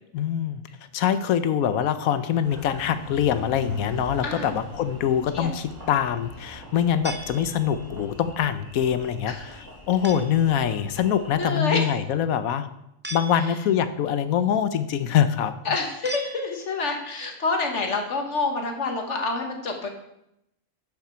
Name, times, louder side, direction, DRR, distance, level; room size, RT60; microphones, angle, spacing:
voice 1, 0.1-0.6 0.9-12.7 13.1-15.5, left 9 dB, 85° left, 11 dB, 1.1 m, -24 dB
Engine, 2.4-11.4, left 1 dB, 45° right, 2.9 m, -42 dB
sound 1, 7.0-8.0 10.0-10.5 13.0-13.9 16.0-16.9, right 2 dB, 15° right, 0.4 m, -39 dB
voice 2, 11.4-11.8 13.3-13.5 15.6-19.9, left 3 dB, 60° left, 3 dB, 1.6 m, -27 dB
12.0 x 5.9 x 4.4 m, 0.82 s
omnidirectional pair, 1.4 m